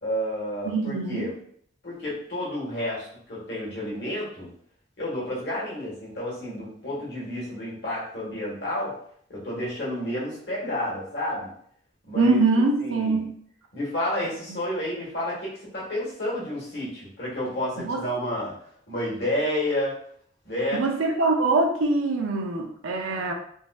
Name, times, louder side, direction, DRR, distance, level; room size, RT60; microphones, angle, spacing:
voice 1, 0.0-1.3 1.8-4.5 5.0-9.0 9.3-11.5 12.0-12.4 12.8-13.3 13.7-18.5 18.9-20.0 20.4-20.8, left 1 dB, 55° left, -6 dB, 1.4 m, -30 dB
voice 2, 0.7-1.3 12.1-13.3 17.8-18.0 20.7-23.3, right 3 dB, 85° right, 2 dB, 0.5 m, -23 dB
3.8 x 2.4 x 2.3 m, 0.62 s
head